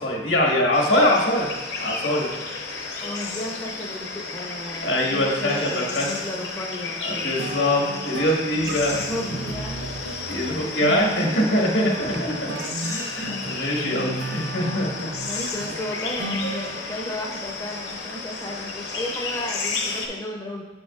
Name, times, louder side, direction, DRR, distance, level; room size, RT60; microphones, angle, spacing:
voice 1, 0.0-1.5 1.8-2.3 4.8-6.1 7.0-9.0 10.3-12.1 12.9-15.1 15.3-15.4 16.4-16.6, left 1 dB, 85° left, -1 dB, 1.7 m, -23 dB
sound 1, 0.7-20.1, left 4 dB, 65° left, 0.9 m, -33 dB
voice 2, 3.0-7.4 8.9-9.9 12.0-12.5 15.2-20.6, left 1 dB, 15° left, 0 dB, 0.5 m, -34 dB
sound 2, 7.4-17.0, right 2 dB, 60° right, 0.5 m, -35 dB
sound 3, 8.6-13.4 13.7-13.8, right 2 dB, 85° right, 2.0 m, -42 dB
7.5 x 6.3 x 2.4 m, 1.3 s
head